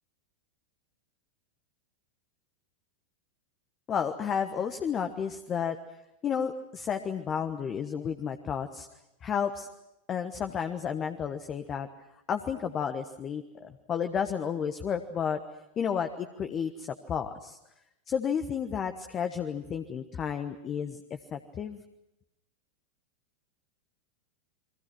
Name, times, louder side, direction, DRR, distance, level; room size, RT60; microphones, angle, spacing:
voice 1, 3.9-5.8 6.2-8.9 9.2-9.7 10.1-11.9 12.3-15.4 15.8-17.6 18.1-21.0 21.3-21.8, left 7 dB, 25° left, 7 dB, 1.3 m, -32 dB
29.5 x 23.0 x 6.2 m, 0.88 s
figure-of-eight pair, 90°, 0 cm